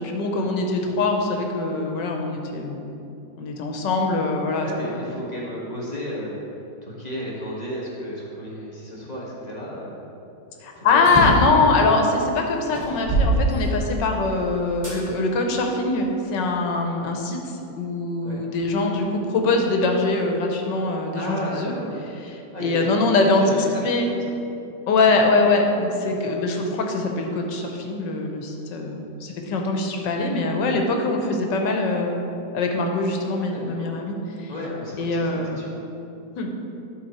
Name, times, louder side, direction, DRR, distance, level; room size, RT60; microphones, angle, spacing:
voice 1, 0.0-2.9 3.4-5.0 10.6-17.4 17.8-21.7 22.3-23.4 23.8-24.1 24.9-32.2 32.5-34.5 35.0-35.6 36.4-36.5, left 3 dB, 85° left, 3 dB, 1.5 m, -23 dB
voice 2, 4.6-6.4 6.8-10.0 10.7-11.3 18.2-18.4 21.1-21.9 22.5-22.9 23.3-23.7 24.0-24.2 26.0-26.4 33.5-33.9 34.5-35.7, equal, 25° left, -5 dB, 1.2 m, -33 dB
sound 1, 11.0-11.5 12.2-12.3 12.7-14.2 14.8-15.0 15.7-16.8, right 2 dB, 15° right, 2.0 m, -24 dB
12.0 x 4.4 x 4.2 m, 2.8 s
omnidirectional pair, 1.9 m